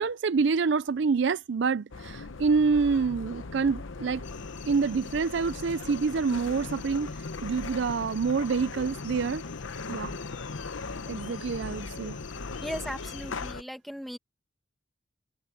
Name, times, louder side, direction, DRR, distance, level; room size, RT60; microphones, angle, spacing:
voice 1, 0.0-4.2 4.7-7.1 7.4-9.4 9.9-10.1 11.1-12.2, right 5 dB, 65° right, 0.4 m, -27 dB
sound 1, 1.9-13.6, left 3 dB, 90° left, 0.9 m, -38 dB
sound 2, 4.2-13.5, left 8 dB, 70° left, 3.0 m, -49 dB
voice 2, 12.6-14.2, equal, ahead, 2.0 m, -37 dB
head